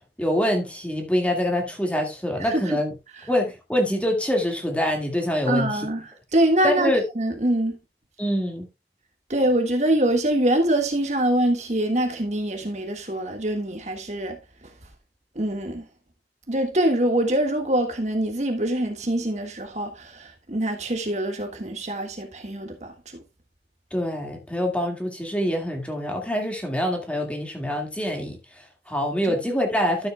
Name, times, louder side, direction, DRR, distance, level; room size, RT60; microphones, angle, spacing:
voice 1, 0.0-2.9 3.3-5.9 6.6-7.0 8.2-8.7 23.9-30.1, equal, 5° left, 1.9 m, -25 dB
voice 2, 2.4-2.8 5.5-7.8 9.3-14.4 15.3-15.8 16.5-23.2 29.2-29.4, right 1 dB, 40° right, 1.6 m, -24 dB
12.5 x 7.8 x 2.2 m
head